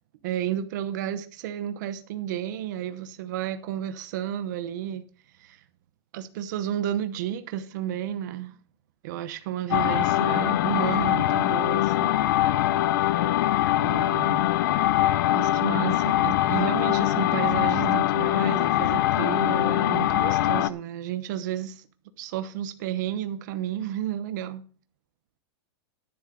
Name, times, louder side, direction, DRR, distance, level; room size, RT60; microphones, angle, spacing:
voice 1, 0.2-5.0 5.4-5.6 6.1-8.5 9.0-12.2 13.8-14.5 15.3-21.8 22.2-24.6, right 11 dB, 45° right, 0.9 m, -32 dB
sound 1, 9.7-20.7, left 13 dB, 50° left, 0.5 m, -23 dB
10.5 x 10.5 x 3.9 m
supercardioid pair, 170°, 14 cm